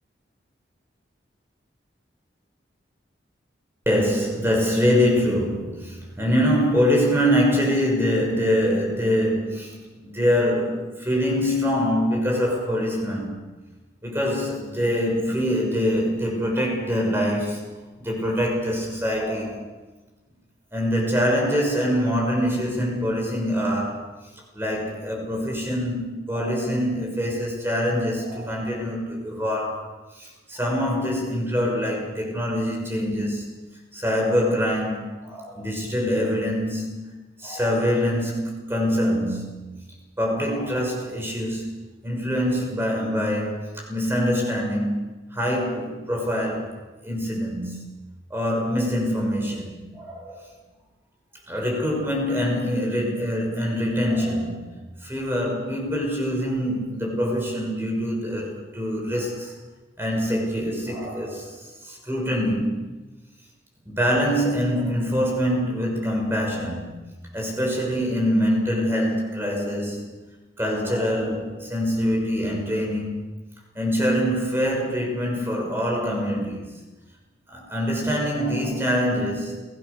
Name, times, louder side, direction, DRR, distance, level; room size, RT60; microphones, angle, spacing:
voice 1, 3.9-13.3 14.0-17.6 18.0-19.6 20.7-24.1 24.5-29.8 30.1-33.5 33.9-37.1 37.4-39.7 40.2-41.8 42.0-45.0 45.3-46.8 47.0-47.9 48.3-50.4 51.5-54.7 55.0-59.5 60.0-62.8 63.9-67.0 67.3-70.0 70.6-73.2 73.7-76.7 77.5-79.6, equal, 15° right, 0 dB, 6.2 m, -24 dB
29.0 x 19.0 x 6.9 m, 1.2 s
head